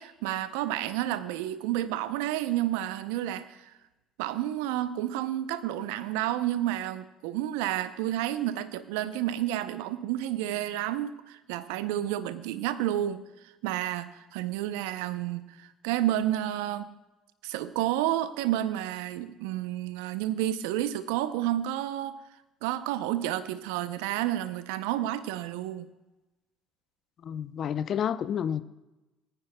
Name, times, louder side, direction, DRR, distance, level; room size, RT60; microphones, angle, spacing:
voice 1, 0.0-3.7 4.2-13.2 13.6-16.9 17.4-22.2 22.6-25.9, right 13 dB, 80° right, 0.5 m, -30 dB
voice 2, 27.2-28.6, left 8 dB, 55° left, 0.5 m, -30 dB
21.0 x 9.8 x 2.2 m
hypercardioid pair, 65°, 0 cm